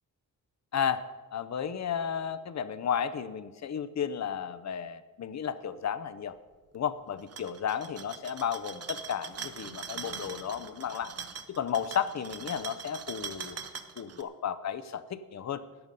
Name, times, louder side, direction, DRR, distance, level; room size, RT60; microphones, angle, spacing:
voice 1, 0.7-1.0 1.3-6.3 6.7-11.1 11.5-13.6 14.0-15.6, left 8 dB, 50° left, 13 dB, 0.6 m, -33 dB
sound 1, 7.2-14.2, right 6 dB, 45° right, 0.8 m, -42 dB
14.0 x 9.7 x 5.3 m, 1.4 s
wide cardioid pair, 160°, 36 cm